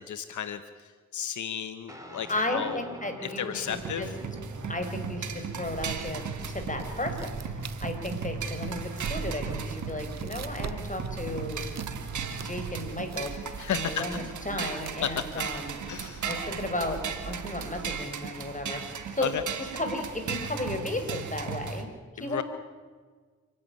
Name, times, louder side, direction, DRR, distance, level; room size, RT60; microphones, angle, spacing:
voice 1, 0.0-2.8 3.2-4.1 13.6-14.0 15.0-15.2 15.9-16.3 19.2-19.4 22.2-22.4, left 9 dB, 85° left, 11 dB, 1.0 m, -33 dB
Guitar, 1.9-10.8, left 1 dB, 10° right, 4.6 m, -48 dB
voice 2, 2.3-4.1 4.7-6.2 6.5-11.6 12.0-12.1 12.4-15.8 16.2-17.0 17.3-18.8 19.1-19.3 19.6-21.9 22.1-22.4, left 1 dB, 25° left, 5 dB, 5.1 m, -34 dB
sound 1, 3.7-21.8, right 6 dB, 80° right, 2.1 m, -36 dB
sound 2, 5.7-18.0, right 6 dB, 65° right, 1.1 m, -42 dB
27.5 x 11.0 x 9.5 m, 1.5 s
cardioid pair, 45°, 29 cm